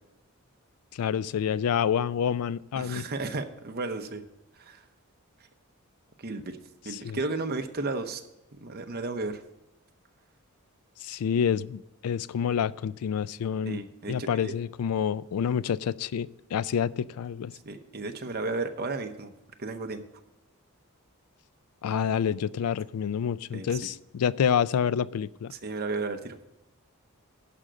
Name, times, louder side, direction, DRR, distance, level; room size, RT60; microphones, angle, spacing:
voice 1, 0.9-3.1 6.9-7.2 11.0-13.8 14.1-17.5 21.8-25.5, left 7 dB, 80° left, 0.3 m, -28 dB
voice 2, 2.7-4.2 4.6-4.8 6.2-8.2 8.5-9.4 13.7-14.5 17.7-19.3 19.6-20.0 23.5-23.8 25.5-26.4, right 3 dB, 45° right, 0.8 m, -34 dB
11.5 x 5.1 x 7.6 m
head